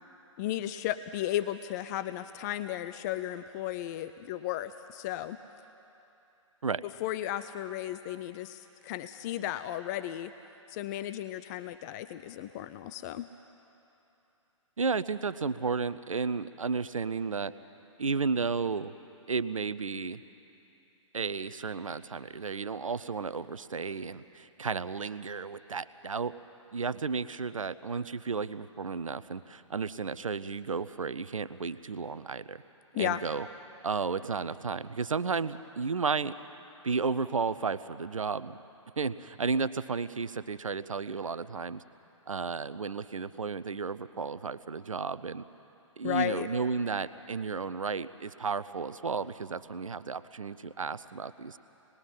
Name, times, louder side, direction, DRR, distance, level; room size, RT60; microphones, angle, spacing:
voice 1, 0.4-5.4 7.0-10.3 10.7-13.3 32.9-33.2 46.0-46.5, left 13 dB, 35° left, 12 dB, 0.5 m, -34 dB
voice 2, 14.8-17.5 18.0-18.9 19.3-20.2 21.1-26.3 26.7-32.6 32.9-33.5 33.8-36.3 36.8-38.6 39.0-41.8 42.3-45.4 46.0-51.6, right 5 dB, 85° right, 14 dB, 0.7 m, -33 dB
26.5 x 20.5 x 5.7 m, 2.9 s
figure-of-eight pair, 125°, 17 cm